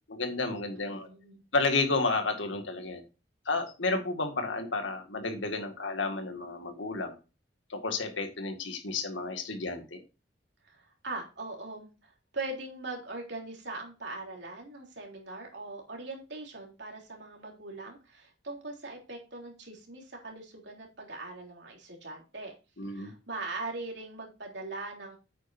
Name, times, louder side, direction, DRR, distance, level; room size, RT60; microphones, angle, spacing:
voice 1, 0.1-1.1 1.5-3.0 3.5-7.2 7.7-10.0 22.8-23.1, left 3 dB, 90° left, 5 dB, 2.0 m, -31 dB
voice 2, 0.8-1.4 10.6-22.5 22.9-25.2, right 2 dB, 65° right, 0 dB, 3.5 m, -41 dB
9.0 x 8.8 x 2.7 m, 0.30 s
head